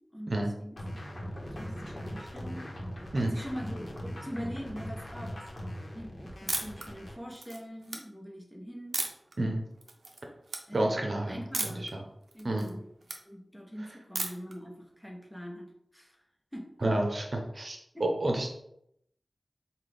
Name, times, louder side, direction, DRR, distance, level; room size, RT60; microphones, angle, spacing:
voice 1, 0.1-2.6 3.2-5.4 5.9-9.1 10.7-11.9 12.3-12.8 13.3-16.2 16.5-16.9 17.9-18.0, equal, 10° left, -1 dB, 0.9 m, -43 dB
sound 1, 0.8-7.2, equal, 50° left, 1.0 m, -40 dB
sound 2, 6.5-6.8 7.3-8.0 8.9-9.3 9.8-10.2 10.5-10.6 11.5-11.9 12.3-13.2 14.1-14.5, right 3 dB, 90° right, 0.5 m, -34 dB
voice 2, 10.7-12.0 12.4-12.7 16.8-18.5, right 1 dB, 60° right, 1 dB, 0.7 m, -30 dB
5.8 x 2.3 x 3.4 m, 0.76 s
wide cardioid pair, 75°, 0 cm